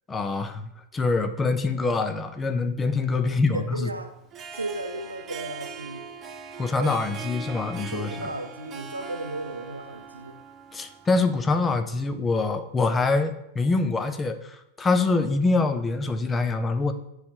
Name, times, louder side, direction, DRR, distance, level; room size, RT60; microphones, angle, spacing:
voice 1, 0.1-3.9 6.6-8.3 10.7-16.9, left 3 dB, 15° left, 8 dB, 0.5 m, -25 dB
voice 2, 3.2-4.1 4.5-6.2 6.8-7.1 7.9-10.4, right 2 dB, 80° right, 7 dB, 0.5 m, -35 dB
Harp, 4.2-11.5, right 4 dB, 25° right, 0.6 m, -41 dB
9.5 x 3.2 x 3.1 m, 0.82 s
figure-of-eight pair, 90°, 0 cm